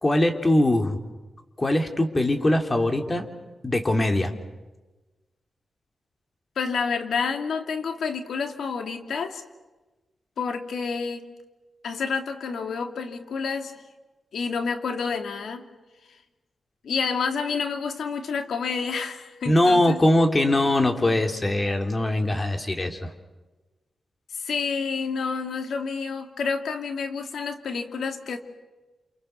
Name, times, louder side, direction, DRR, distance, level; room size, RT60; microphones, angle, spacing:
voice 1, 0.0-1.0 1.6-3.2 3.6-4.3 19.4-23.1, left 1 dB, 25° left, 5 dB, 3.3 m, -21 dB
voice 2, 6.6-9.4 10.4-11.3 11.8-13.8 14.3-15.6 16.8-20.0 24.3-28.4, left 5 dB, 85° left, 6 dB, 2.6 m, -29 dB
29.5 x 28.0 x 6.8 m, 1.2 s
cardioid pair, 80°, 0 cm